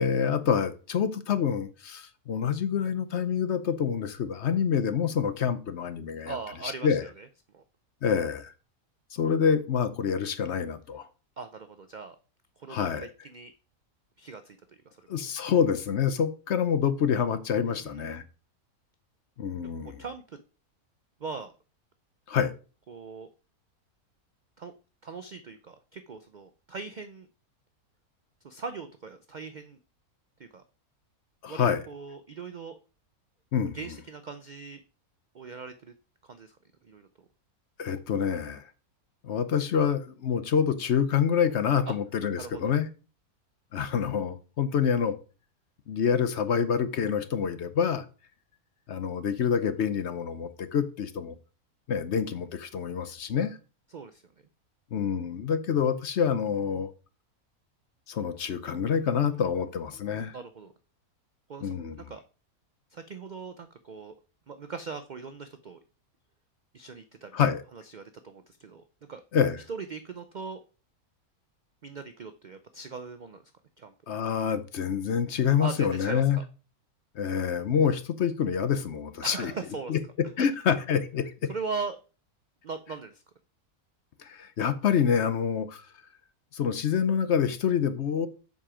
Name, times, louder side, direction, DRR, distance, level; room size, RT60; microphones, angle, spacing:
voice 1, 0.0-6.4 6.6-7.0 8.0-8.5 9.1-11.1 12.7-13.1 15.1-18.2 19.4-20.0 22.3-22.5 31.4-31.8 33.5-33.8 37.8-38.6 39.2-42.9 43.7-45.2 45.9-48.0 48.9-51.3 51.9-53.6 54.9-56.9 58.1-60.4 61.6-62.0 67.3-67.6 69.3-69.6 74.1-76.4 77.2-79.5 79.9-80.0 80.4-81.3 84.2-85.9 86.5-88.3, left 7 dB, 55° left, 0.9 m, -27 dB
voice 2, 6.2-7.3 7.5-7.6 11.4-12.2 12.6-13.5 14.2-15.0 17.7-18.1 20.0-20.4 21.2-21.5 22.9-23.3 24.6-24.7 25.0-27.3 28.4-29.8 30.4-30.6 31.5-32.8 33.7-34.8 35.3-35.9 36.2-36.6 36.8-37.1 41.9-42.0 42.4-42.7 53.9-54.2 58.9-59.4 60.3-60.7 61.5-62.2 62.9-64.1 64.5-65.8 66.7-67.4 67.7-68.8 69.1-69.2 69.7-70.6 71.8-73.4 73.8-73.9 75.6-76.4 79.2-79.9 80.4-80.5 81.5-82.0 82.6-83.2, right 4 dB, 80° right, 0.4 m, -40 dB
7.5 x 5.4 x 4.9 m
omnidirectional pair, 1.6 m